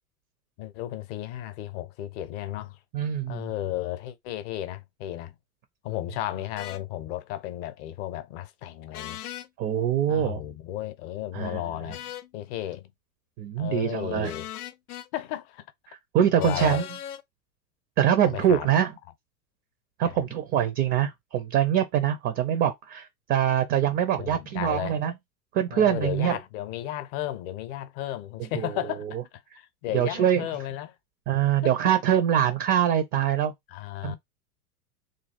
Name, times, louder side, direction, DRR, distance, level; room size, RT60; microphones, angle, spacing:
voice 1, 0.6-2.8 3.3-5.4 5.8-9.2 10.1-12.9 13.6-14.5 15.1-15.6 16.4-16.8 18.3-18.7 20.0-20.4 24.2-25.0 25.7-29.2 29.5-30.9 31.5-31.7 33.7-34.2, left 13 dB, 45° left, 0.7 m, -34 dB
voice 2, 2.9-3.5 9.6-10.4 11.3-11.6 13.4-14.3 15.9-16.8 18.0-18.9 20.0-25.1 25.5-26.4 28.5-28.7 29.9-30.5 31.3-33.5 34.0-34.2, right 10 dB, 30° right, 0.5 m, -24 dB
sound 1, 6.6-6.8 8.9-9.5 11.9-12.3 14.2-15.1 16.4-17.2, left 11 dB, 80° left, 0.6 m, -38 dB
3.2 x 2.3 x 4.1 m
hypercardioid pair, 95°, 44 cm